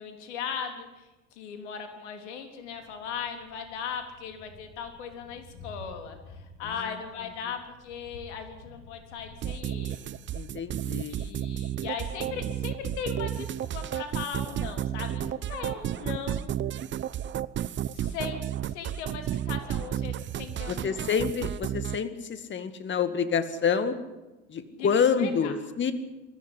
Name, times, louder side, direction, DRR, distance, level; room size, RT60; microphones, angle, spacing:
voice 1, 0.0-10.0 11.1-16.5 17.9-18.4 18.7-20.9 24.8-25.5, left 7 dB, 70° left, 6 dB, 3.5 m, -38 dB
Thunder, 2.6-15.3, left 2 dB, 55° left, 7.1 m, -51 dB
sound 1, 9.4-22.0, right 11 dB, 30° right, 0.8 m, -32 dB
voice 2, 10.3-11.2 20.7-24.0 24.5-25.9, left 6 dB, 30° left, 11 dB, 2.3 m, -27 dB
21.0 x 14.5 x 10.0 m, 1.1 s
hypercardioid pair, 80°, 36 cm